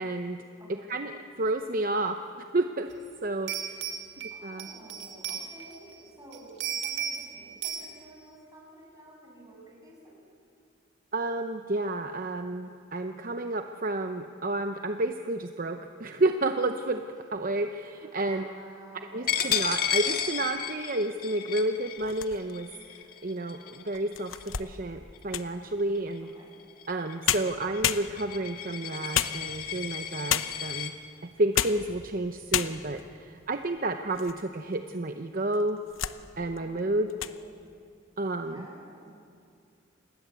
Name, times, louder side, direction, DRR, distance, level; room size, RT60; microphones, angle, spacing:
voice 1, 0.0-0.4 0.9-2.2 2.5-2.9 3.2-3.8 4.2-4.7 11.1-17.1 17.3-18.5 19.1-26.3 26.9-30.9 31.2-35.8 36.4-37.1 38.2-38.7, right 2 dB, 45° right, 7 dB, 0.8 m, -30 dB
voice 2, 0.6-0.9 4.3-10.2 17.9-19.8 26.3-26.5 36.6-36.9 37.3-37.4 38.4-39.1, right 1 dB, 20° right, -3 dB, 7.2 m, -51 dB
sound 1, 2.9-3.0 3.5-6.0 6.3-7.3 7.6-7.9, right 8 dB, 65° right, 2.3 m, -35 dB
Coin (dropping), 19.3-24.7 25.1-25.4 25.8-30.9, left 8 dB, 50° left, 1.7 m, -33 dB
sound 2, 22.0-22.7 23.3-23.4 23.9-25.6 26.9-27.0 27.3-28.5 29.1-29.8 30.3-30.8 31.4-31.9 32.2-32.3 32.5-33.1 33.6-34.4 34.7-34.8 35.5-36.2 36.6-36.8 37.1-37.4, left 10 dB, 85° left, 0.9 m, -31 dB
27.5 x 20.5 x 8.3 m, 2.4 s
head